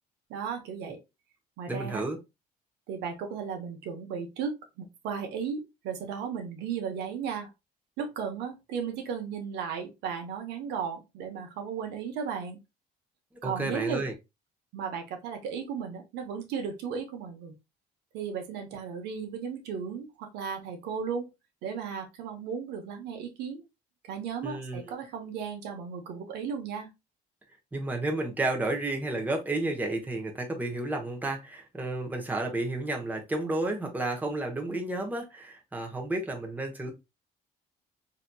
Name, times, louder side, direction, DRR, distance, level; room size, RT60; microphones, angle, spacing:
voice 1, 0.3-1.0 1.6-2.0 2.9-4.5 4.8-7.5 8.0-12.6 13.4-14.0 14.7-17.5 18.1-21.3 21.6-23.6 24.1-26.9, right 6 dB, 85° right, 0.9 m, -35 dB
voice 2, 1.7-2.2 13.4-14.1 24.4-24.9 27.7-36.9, right 2 dB, 10° right, 0.9 m, -31 dB
4.0 x 2.8 x 2.2 m
cardioid pair, 110°, 17 cm